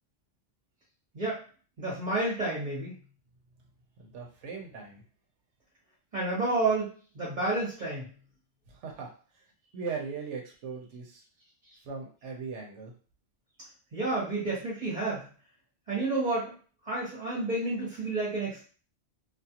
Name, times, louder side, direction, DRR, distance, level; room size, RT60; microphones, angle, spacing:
voice 1, 1.8-3.0 6.1-8.1 13.9-15.3 15.9-16.6 16.8-18.7, right 2 dB, 40° right, -7 dB, 1.1 m, -30 dB
voice 2, 4.0-5.0 8.7-9.1 9.7-11.2 11.8-12.9, right 5 dB, 80° right, 0 dB, 1.0 m, -39 dB
2.5 x 2.4 x 2.8 m, 0.38 s
omnidirectional pair, 1.2 m